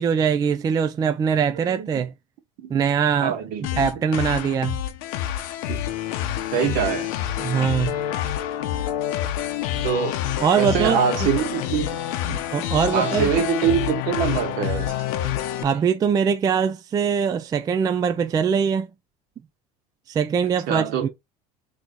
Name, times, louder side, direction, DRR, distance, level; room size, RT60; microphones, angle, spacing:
voice 1, 0.0-2.1 2.7-3.4 3.8-4.8 7.4-7.9 10.4-11.3 12.5-13.3 15.6-18.9 20.1-21.1, right 7 dB, 20° right, 0.3 m, -22 dB
voice 2, 1.7-2.0 2.6-2.7 3.2-3.8 5.7-5.8 6.5-7.1 9.8-10.2 10.6-12.0 12.3-12.4 12.9-15.0 20.7-21.1, right 8 dB, 65° right, 1.4 m, -24 dB
sound 1, 3.6-15.6, left 11 dB, 80° left, 0.8 m, -27 dB
3.4 x 3.1 x 3.8 m
cardioid pair, 130°, 18 cm